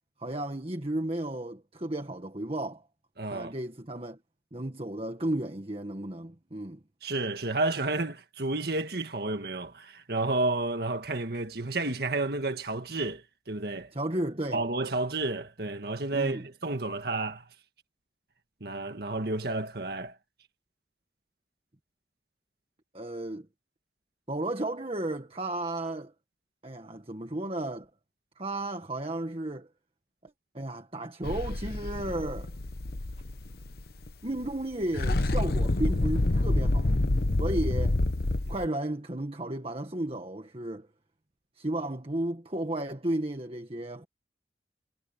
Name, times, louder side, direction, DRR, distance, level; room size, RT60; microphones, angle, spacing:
voice 1, 0.2-2.8 3.3-4.2 4.5-6.8 13.9-14.6 16.1-16.4 22.9-23.5 24.3-26.1 26.6-27.9 28.4-29.7 30.2-32.5 34.2-37.0 37.4-38.0 38.5-40.9 41.6-44.0, right 1 dB, 35° right, 1.7 m, -33 dB
voice 2, 3.2-3.5 7.0-13.9 14.5-17.4 18.6-20.2, right 2 dB, 60° right, 1.8 m, -31 dB
sound 1, 31.2-34.1 34.4-34.6 34.8-38.7, left 2 dB, 60° left, 1.0 m, -27 dB
head